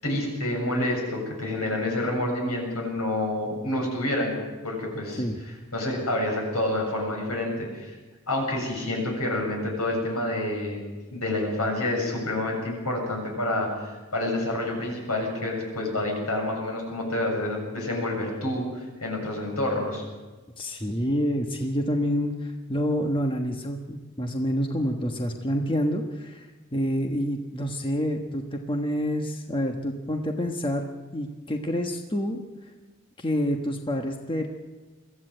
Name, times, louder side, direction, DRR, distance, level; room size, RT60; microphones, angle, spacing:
voice 1, 0.0-4.3 4.6-5.2 5.7-8.0 8.3-10.8 11.1-20.0, left 1 dB, 85° left, 0 dB, 7.4 m, -28 dB
voice 2, 20.6-30.8 31.1-32.4 33.2-34.5, equal, 25° left, 3 dB, 1.3 m, -28 dB
22.5 x 15.0 x 7.9 m, 1.3 s
head